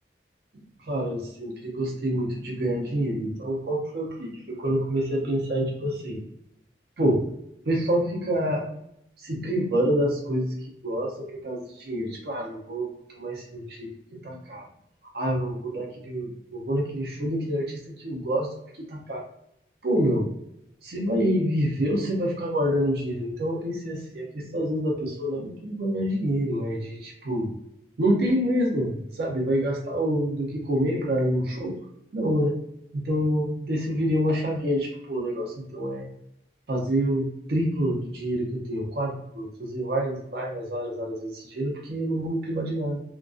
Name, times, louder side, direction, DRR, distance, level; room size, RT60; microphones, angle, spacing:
voice 1, 0.5-6.2 7.0-7.2 7.7-8.7 9.2-14.7 15.1-19.2 19.8-20.3 20.8-27.5 28.0-31.8 32.1-32.6 32.9-36.1 36.7-43.0, equal, 55° right, -2 dB, 0.4 m, -27 dB
2.3 x 2.2 x 2.4 m, 0.78 s
head